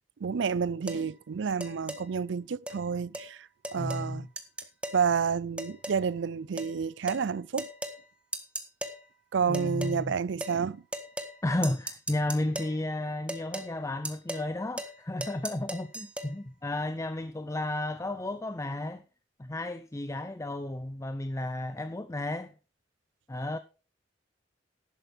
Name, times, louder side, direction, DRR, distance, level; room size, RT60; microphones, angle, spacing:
voice 1, 0.2-4.3 4.9-7.7 9.3-10.8, right 6 dB, 85° right, 0.4 m, -30 dB
sound 1, 0.9-1.0 1.6-2.0 2.7-2.8 3.1-3.3 3.6-4.1 4.4-5.0 5.6-6.0 6.6-6.7 7.1-7.2 7.6-8.0 8.3-9.0 9.5-10.0 10.4-10.6 10.9-11.4 11.6-12.8 13.3-13.7 14.0-14.5 14.8-15.0 15.2-16.3, right 1 dB, 5° right, 1.5 m, -37 dB
voice 2, 3.8-4.3 9.5-10.1 11.4-19.0 19.4-22.5 23.3-23.6, left 1 dB, 15° left, 0.6 m, -33 dB
13.5 x 11.0 x 3.5 m
head